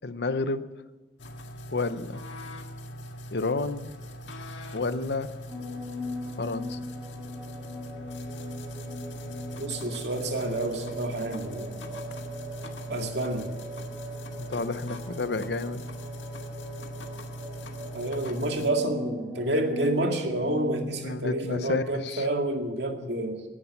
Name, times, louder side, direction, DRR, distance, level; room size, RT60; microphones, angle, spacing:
voice 1, 0.0-0.6 1.7-2.2 3.3-3.9 4.7-5.3 6.4-6.8 14.4-15.8 21.0-22.2, left 3 dB, 65° left, 13 dB, 0.7 m, -30 dB
sound 1, 1.2-18.7, equal, 90° left, 1.8 m, -40 dB
sound 2, 5.5-20.9, left 1 dB, ahead, 2.5 m, -40 dB
voice 2, 9.6-11.8 12.9-13.5 17.9-23.4, right 1 dB, 70° right, 3 dB, 2.1 m, -29 dB
16.5 x 10.0 x 7.2 m, 1.3 s
head